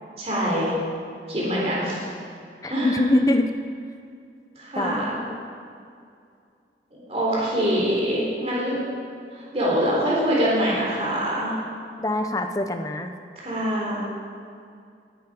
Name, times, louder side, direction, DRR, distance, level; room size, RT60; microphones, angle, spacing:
voice 1, 0.2-0.7 1.3-2.0 2.7-3.0 4.6-5.2 6.9-8.8 9.3-11.5 13.4-14.0, equal, 35° right, -6 dB, 3.8 m, -24 dB
voice 2, 2.6-3.5 4.8-5.0 5.3-5.4 12.0-13.1, left 1 dB, 20° left, 6 dB, 0.7 m, -23 dB
19.0 x 9.5 x 5.1 m, 2.4 s
head